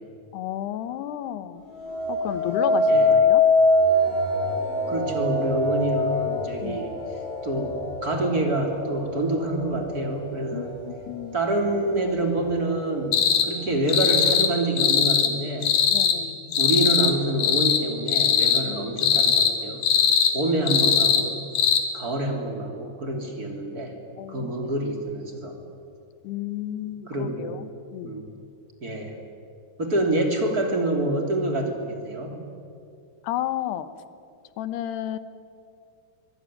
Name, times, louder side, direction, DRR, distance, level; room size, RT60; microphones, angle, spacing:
voice 1, 0.3-1.6 2.1-3.4 6.6-6.8 10.5-11.4 15.9-16.4 18.7-19.0 24.2-24.5 26.2-27.6 27.9-28.1 33.2-33.9 34.6-35.2, left 12 dB, 70° left, 12 dB, 3.0 m, -32 dB
sound 1, 1.7-10.9 11.4-11.9, left 2 dB, 40° right, 8.3 m, -24 dB
voice 2, 2.9-3.2 4.9-6.9 7.4-10.8 11.3-15.8 16.6-19.9 20.3-21.5 21.9-23.9 24.3-25.6 27.1-27.6 28.0-28.3 28.8-29.2 29.8-32.4, right 1 dB, 25° right, 3 dB, 2.9 m, -27 dB
sound 2, 13.1-13.5 13.9-14.5 14.8-15.3 15.6-16.2 16.5-17.1 17.4-17.8 18.1-18.6 19.0-19.5 19.8-20.3 20.7-21.2 21.5-21.8, left 7 dB, 55° left, 2.6 m, -20 dB
24.0 x 22.5 x 9.9 m, 2.4 s
omnidirectional pair, 5.2 m